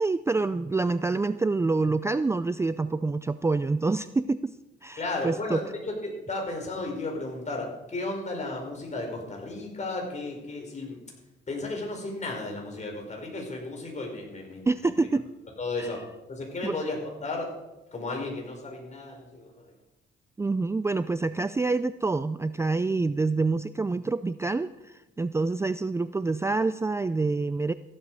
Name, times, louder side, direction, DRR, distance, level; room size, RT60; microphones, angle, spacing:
voice 1, 0.0-4.6 4.8-5.6 14.7-15.2 15.8-15.9 16.6-16.8 20.4-27.7, right 3 dB, 15° right, 13 dB, 0.4 m, -27 dB
voice 2, 5.0-11.0 11.5-15.1 15.6-16.0 16.3-17.5 17.9-19.7, left 2 dB, 35° left, 1 dB, 5.1 m, -34 dB
15.0 x 12.0 x 4.8 m, 1.0 s
cardioid pair, 90°, 20 cm